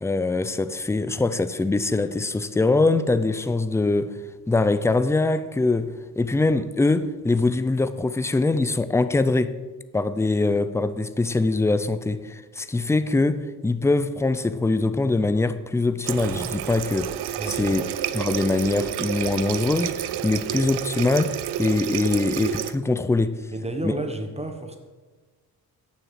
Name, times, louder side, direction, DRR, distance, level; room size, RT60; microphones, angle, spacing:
voice 1, 0.0-4.1 4.5-5.9 6.2-9.5 9.9-17.1 17.5-17.8 18.1-23.4 23.8-23.9, left 3 dB, 5° left, 0.5 m, -23 dB
Water tap faucet, 16.1-22.7, right 12 dB, 85° right, 0.6 m, -30 dB
voice 2, 17.4-17.9 23.5-24.8, right 1 dB, 15° right, 1.2 m, -31 dB
8.9 x 7.1 x 7.4 m
cardioid pair, 110°, 39 cm